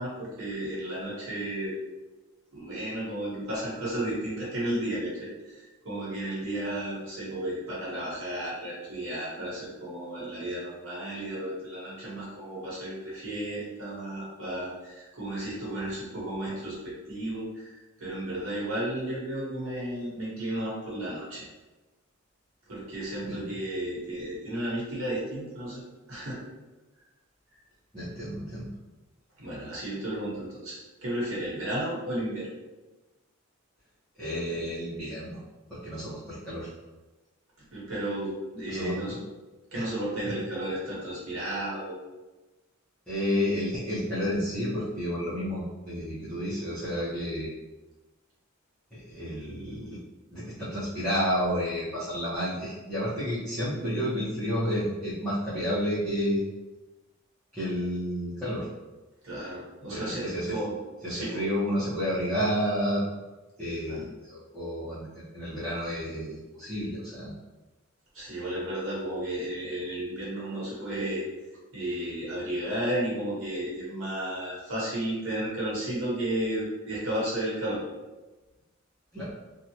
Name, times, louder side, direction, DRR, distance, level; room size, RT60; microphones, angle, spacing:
voice 1, 0.0-1.7 2.5-17.7 18.0-21.5 22.7-25.8 26.1-26.4 29.4-32.5 37.7-39.2 39.7-42.0 59.2-60.8 61.1-61.4 63.9-64.0 68.1-71.2 71.7-77.8, right 1 dB, 75° right, -6 dB, 1.2 m, -33 dB
voice 2, 27.9-28.7 34.2-35.4 35.7-36.7 38.7-39.2 39.7-39.9 40.2-40.4 43.1-47.5 48.9-50.0 50.3-56.4 57.5-58.7 59.9-60.6 61.0-63.0 63.6-65.1 65.3-67.3 79.1-79.3, equal, 5° left, -16 dB, 0.9 m, -31 dB
2.8 x 2.3 x 2.8 m, 1.1 s
head